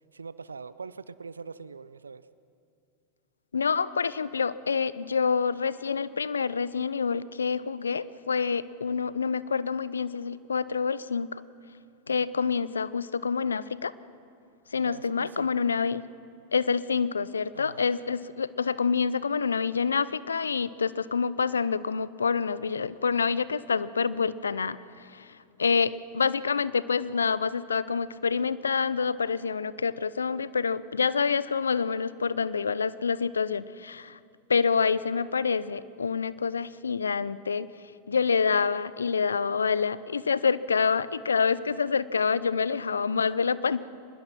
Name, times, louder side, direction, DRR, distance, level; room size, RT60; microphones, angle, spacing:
voice 1, 0.1-2.3 14.8-15.7 17.5-17.8, right 5 dB, 90° right, 16 dB, 0.5 m, -42 dB
voice 2, 3.5-11.4 12.1-13.9 14.7-16.0 16.5-25.3 25.6-34.2 34.5-37.7 38.1-43.8, left 5 dB, 85° left, 18 dB, 0.6 m, -27 dB
24.5 x 20.5 x 6.0 m, 2.6 s
hypercardioid pair, 95°, 0 cm